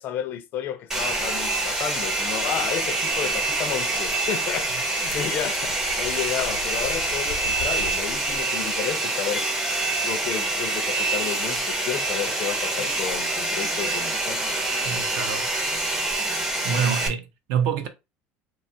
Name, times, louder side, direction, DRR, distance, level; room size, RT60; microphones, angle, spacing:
voice 1, 0.0-9.5 10.0-14.6, left 9 dB, 45° left, 0.4 m, -32 dB
Domestic sounds home sounds, 0.9-17.1, right 2 dB, 10° right, 0.5 m, -26 dB
sound 1, 3.1-8.4, left 4 dB, 90° left, 0.8 m, -40 dB
voice 2, 14.8-15.5 16.6-17.9, right 7 dB, 70° right, 0.6 m, -26 dB
2.8 x 2.3 x 2.6 m
cardioid pair, 160°, 5 cm